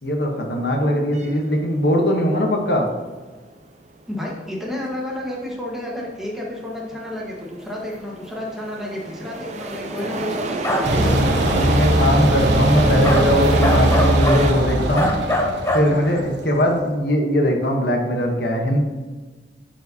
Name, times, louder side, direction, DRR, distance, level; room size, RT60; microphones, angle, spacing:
voice 1, 0.0-2.9 11.5-15.2 15.7-18.8, equal, 60° left, 1 dB, 1.1 m, -20 dB
sound 1, 1.1-14.5, right 2 dB, 40° right, 0.6 m, -31 dB
voice 2, 4.1-11.4 15.8-16.2, left 1 dB, ahead, -4 dB, 1.3 m, -31 dB
sound 2, 10.6-10.9 13.0-13.3 13.6-14.4 15.0-15.9, left 1 dB, 15° left, 0.6 m, -21 dB
sound 3, 10.8-16.6, right 1 dB, 75° right, 1.0 m, -20 dB
10.5 x 4.7 x 2.8 m, 1.3 s
head